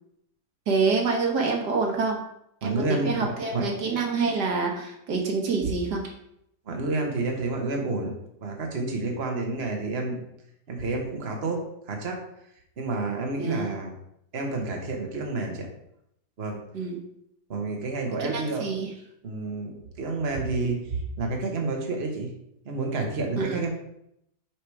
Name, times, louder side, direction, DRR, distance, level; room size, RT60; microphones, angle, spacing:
voice 1, 0.7-2.2 2.6-6.1 13.4-13.7 16.7-17.0 18.2-18.9 23.4-23.6, right 4 dB, 80° right, 1 dB, 1.8 m, -27 dB
voice 2, 2.6-3.6 6.7-8.1 8.4-10.2 10.7-12.2 12.8-13.9 14.3-15.7 16.4-16.6 17.5-18.7 19.2-22.3 22.6-23.7, right 3 dB, 40° right, 1 dB, 1.4 m, -29 dB
6.1 x 5.1 x 4.8 m, 0.77 s
omnidirectional pair, 1.8 m